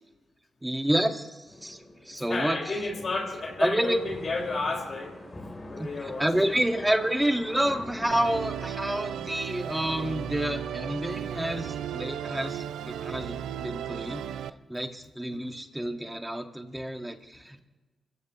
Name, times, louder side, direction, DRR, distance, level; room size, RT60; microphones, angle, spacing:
voice 1, 0.6-2.8 3.6-4.0 5.8-14.3 14.7-17.6, right 1 dB, 10° right, 5 dB, 1.7 m, -29 dB
sound 1, 1.5-10.3, left 1 dB, 30° left, 3.5 m, -45 dB
voice 2, 2.3-5.1 5.7-6.3 15.3-15.5, left 3 dB, 55° left, 0 dB, 4.9 m, -32 dB
Musical instrument, 8.1-14.5, right 9 dB, 90° right, 0.5 m, -35 dB
25.0 x 15.0 x 3.1 m, 1.2 s
cardioid pair, 55°, 0 cm